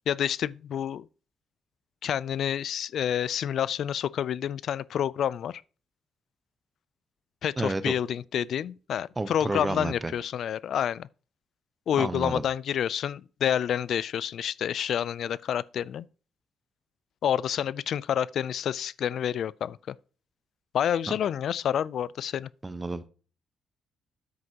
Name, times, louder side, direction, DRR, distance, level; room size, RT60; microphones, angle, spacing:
voice 1, 0.1-1.1 2.0-5.6 7.4-11.1 11.9-16.0 17.2-19.9 20.7-22.5, left 9 dB, 65° left, 0.3 m, -28 dB
voice 2, 7.6-7.9 9.2-10.1 12.0-12.4 21.1-21.2 22.6-23.1, right 2 dB, 20° right, 0.9 m, -31 dB
9.5 x 7.9 x 2.9 m
cardioid pair, 90°, 0 cm